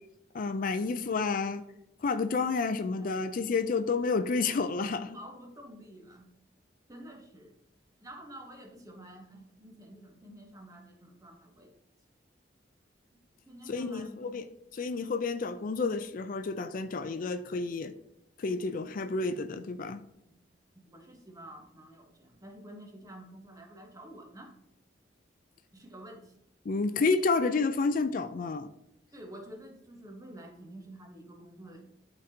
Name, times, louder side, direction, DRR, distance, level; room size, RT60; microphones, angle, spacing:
voice 1, 0.3-1.6 2.0-5.2 13.7-14.5 14.7-17.9 18.4-20.0 26.7-28.7, left 4 dB, 50° left, 0.4 m, -30 dB
voice 2, 5.1-6.3 6.9-7.6 8.0-11.7 13.5-14.2 20.3-20.4 20.7-24.6 25.7-26.3 29.1-31.9, right 1 dB, 20° right, 1.2 m, -49 dB
12.0 x 4.0 x 2.8 m
head